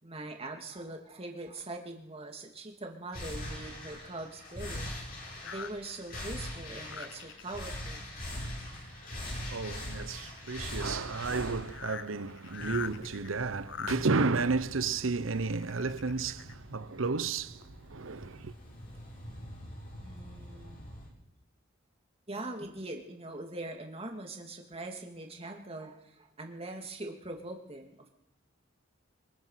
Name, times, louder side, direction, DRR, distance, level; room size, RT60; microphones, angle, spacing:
voice 1, 0.0-8.1 18.9-19.1 20.0-20.8 22.3-28.0, right 2 dB, 30° right, 2.8 m, -42 dB
sound 1, 3.1-21.1, left 1 dB, 50° left, 7.7 m, -43 dB
sound 2, 5.4-8.0 8.4-8.8 9.1-10.7 11.3-11.4 11.6-14.0 15.0-16.5 17.1-17.2 17.6-17.7, left 7 dB, 65° left, 0.8 m, -44 dB
voice 2, 9.4-18.5, right 4 dB, 80° right, 0.9 m, -32 dB
24.0 x 22.0 x 5.9 m
head